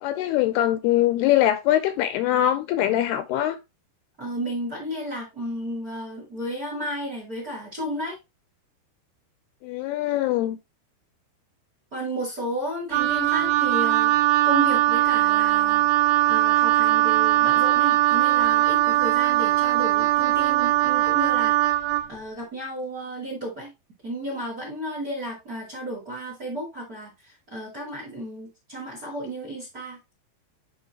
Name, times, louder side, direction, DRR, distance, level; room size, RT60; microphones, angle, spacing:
voice 1, 0.0-3.6 9.6-10.6, left 13 dB, 80° left, 2.4 m, -22 dB
voice 2, 4.2-8.2 11.9-14.1 14.4-15.9 16.2-21.8 22.1-23.7 24.0-30.0, right 1 dB, 30° right, 1.7 m, -33 dB
Wind instrument woodwind instrument, 12.9-22.1, right 14 dB, 90° right, 2.2 m, -20 dB
10.0 x 3.5 x 2.8 m
omnidirectional pair, 4.9 m